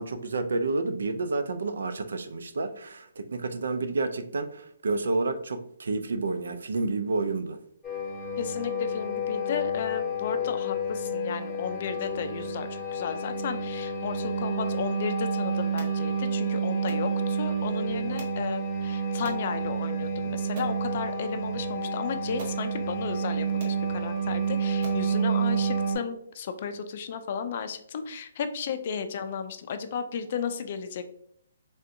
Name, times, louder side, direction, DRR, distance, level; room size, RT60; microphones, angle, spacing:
voice 1, 0.0-7.6, right 3 dB, 80° right, 10 dB, 0.4 m, -30 dB
sound 1, 7.8-26.0, right 3 dB, 5° left, 1.2 m, -29 dB
voice 2, 8.4-31.0, left 6 dB, 45° left, 9 dB, 0.3 m, -34 dB
sound 2, 15.8-16.0 16.9-17.1 18.2-18.4 19.2-19.4 20.0-20.1 20.6-20.8 21.8-21.9 22.4-22.6 23.3-23.4 23.6-23.8 24.4-24.5 24.8-25.1, right 2 dB, 45° right, 0.8 m, -43 dB
3.4 x 2.5 x 2.6 m, 0.69 s
hypercardioid pair, 150°, 0 cm